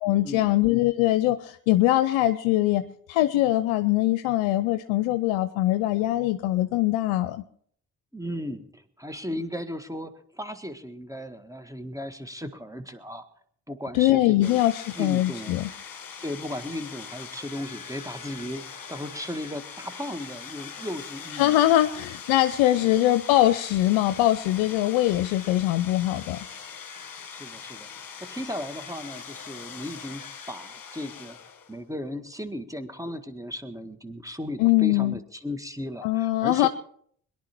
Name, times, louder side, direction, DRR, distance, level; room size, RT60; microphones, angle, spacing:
voice 1, 0.0-2.8 3.1-7.4 13.9-15.7 21.3-26.4 34.6-35.2 36.0-36.7, left 15 dB, 80° left, 10 dB, 0.7 m, -22 dB
voice 2, 8.1-13.3 13.7-14.6 15.0-15.6 16.2-21.6 22.7-23.0 27.3-27.9 28.2-31.4 31.7-36.7, left 1 dB, 5° right, 10 dB, 1.7 m, -36 dB
sound 1, 14.4-31.9, left 7 dB, 45° left, 1.6 m, -42 dB
22.0 x 11.0 x 4.5 m, 0.62 s
hypercardioid pair, 40°, 48 cm